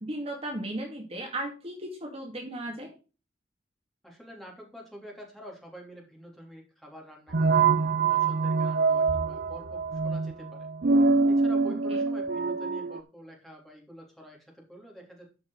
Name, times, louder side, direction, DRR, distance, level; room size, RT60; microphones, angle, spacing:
voice 1, 0.0-2.9 11.9-12.0, right 1 dB, 35° right, 1 dB, 2.3 m, -36 dB
voice 2, 4.0-10.7 11.3-15.3, equal, ahead, -1 dB, 3.5 m, -47 dB
sound 1, 7.3-13.0, right 4 dB, 55° right, 0.6 m, -25 dB
12.5 x 6.0 x 4.1 m, 0.33 s
head